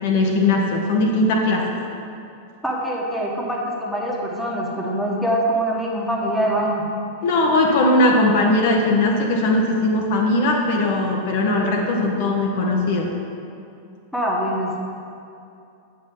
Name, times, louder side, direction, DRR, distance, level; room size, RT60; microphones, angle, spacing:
voice 1, 0.0-1.8 7.2-13.1, left 2 dB, 50° left, 1 dB, 0.9 m, -19 dB
voice 2, 2.6-6.8 14.1-14.8, right 1 dB, ahead, -4 dB, 1.4 m, -24 dB
8.3 x 5.5 x 5.5 m, 2.6 s
figure-of-eight pair, 90°, 0 cm